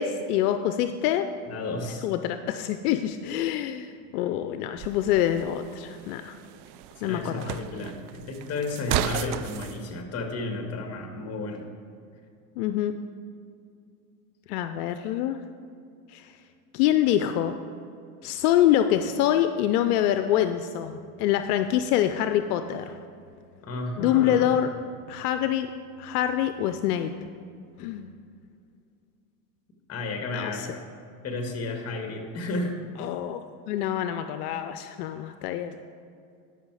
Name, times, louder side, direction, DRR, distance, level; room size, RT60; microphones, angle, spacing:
voice 1, 0.0-1.3 2.0-6.3 7.0-7.6 12.6-12.9 14.5-15.4 16.1-16.3 16.7-17.5 18.2-23.0 24.0-24.7 25.1-25.7 26.0-27.1 27.8-28.1 30.3-30.7 33.0-33.4 33.7-35.7, left 11 dB, 80° left, 9 dB, 0.6 m, -25 dB
voice 2, 1.5-2.1 7.0-11.6 23.6-24.5 29.9-30.8 31.2-32.7, left 2 dB, 30° left, 3 dB, 1.8 m, -32 dB
sound 1, 4.8-9.8, right 13 dB, 50° right, 0.5 m, -34 dB
12.5 x 5.8 x 4.8 m, 2.4 s
supercardioid pair, 110°, 45 cm